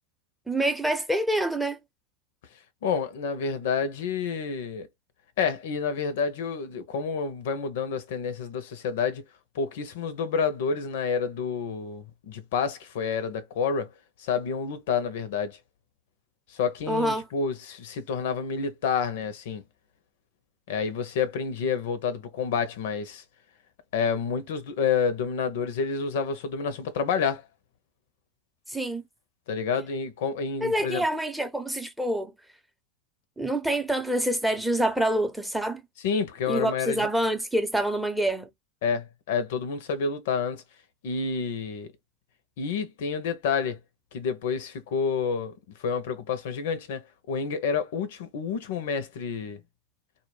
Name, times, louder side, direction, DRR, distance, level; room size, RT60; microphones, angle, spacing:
voice 1, 0.5-1.8 16.9-17.3 28.7-29.0 30.6-32.3 33.4-35.8 36.5-38.5, right 1 dB, 5° right, 0.6 m, -26 dB
voice 2, 2.8-4.9 5.4-9.2 9.5-13.9 14.2-15.6 16.5-19.6 20.7-23.2 23.9-27.4 29.5-31.0 36.0-37.1 38.8-40.6 41.0-41.9 42.6-43.8 44.1-45.5 45.8-49.6, left 6 dB, 65° left, 0.5 m, -29 dB
2.1 x 2.1 x 3.1 m
hypercardioid pair, 95°, 0 cm